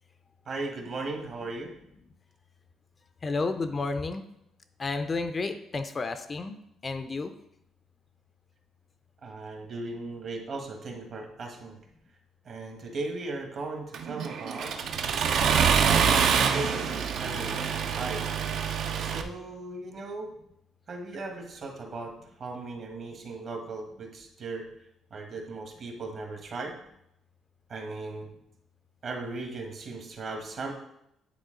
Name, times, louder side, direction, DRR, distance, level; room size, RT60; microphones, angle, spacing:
voice 1, 0.4-1.7 9.2-11.8 12.4-14.8 15.8-18.3 19.0-20.3 20.9-24.7 25.1-26.8 27.7-28.3 29.0-30.7, right 3 dB, 45° right, 3 dB, 1.3 m, -37 dB
voice 2, 3.2-4.2 4.8-6.6 6.8-7.3, left 3 dB, 25° left, 9 dB, 0.4 m, -31 dB
Accelerating revving vroom, 13.9-19.2, right 7 dB, 65° right, 0.5 m, -26 dB
9.2 x 4.2 x 3.8 m, 0.78 s
cardioid pair, 135°, 0 cm